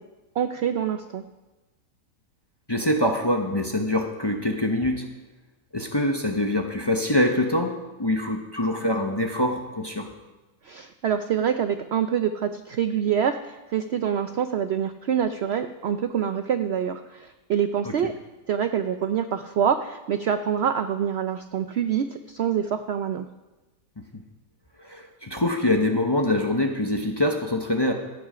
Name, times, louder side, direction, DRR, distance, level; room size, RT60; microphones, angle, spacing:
voice 1, 0.4-1.2 10.6-18.1 18.5-23.2, right 8 dB, 65° right, 9 dB, 0.6 m, -26 dB
voice 2, 2.7-5.1 5.7-10.1 24.0-24.1 24.8-27.9, left 1 dB, 20° left, 3 dB, 0.7 m, -24 dB
16.0 x 8.0 x 5.0 m, 1.1 s
omnidirectional pair, 1.6 m